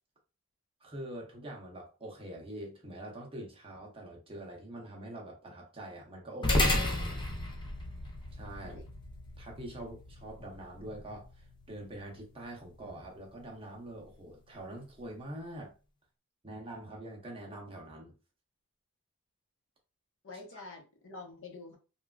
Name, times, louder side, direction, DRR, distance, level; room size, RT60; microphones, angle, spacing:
voice 1, 0.8-7.2 8.3-8.8 9.4-15.7 16.4-18.1 20.5-20.7, right 1 dB, 25° right, 0.7 m, -45 dB
sound 1, 6.4-15.1, left 1 dB, 20° left, 0.5 m, -36 dB
voice 2, 20.2-21.8, left 3 dB, 60° left, 0.8 m, -47 dB
3.1 x 2.3 x 2.3 m
head